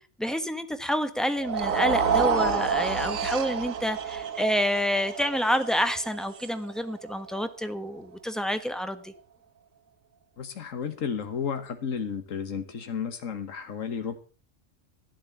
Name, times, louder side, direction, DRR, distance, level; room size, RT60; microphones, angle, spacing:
voice 1, 0.2-9.1, equal, ahead, 9 dB, 1.1 m, -28 dB
sound 1, 1.4-7.6, right 6 dB, 90° right, 1.5 m, -29 dB
voice 2, 10.4-14.2, left 6 dB, 80° left, 7 dB, 1.7 m, -32 dB
12.0 x 8.3 x 7.0 m, 0.40 s
omnidirectional pair, 1.3 m